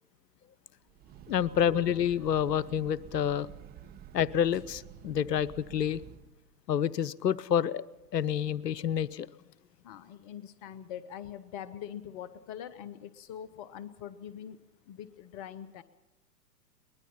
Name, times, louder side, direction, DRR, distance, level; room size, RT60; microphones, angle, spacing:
Breathing / Train, 0.8-6.4, right 10 dB, 20° right, 0.9 m, -50 dB
voice 1, 1.3-3.5 4.1-6.0 6.7-7.8 8.1-9.3, left 9 dB, 75° left, 18 dB, 0.8 m, -28 dB
voice 2, 9.8-14.6 14.9-15.8, left 10 dB, 25° left, 15 dB, 0.6 m, -43 dB
23.0 x 21.0 x 5.8 m, 1.1 s
hypercardioid pair, 120°, 49 cm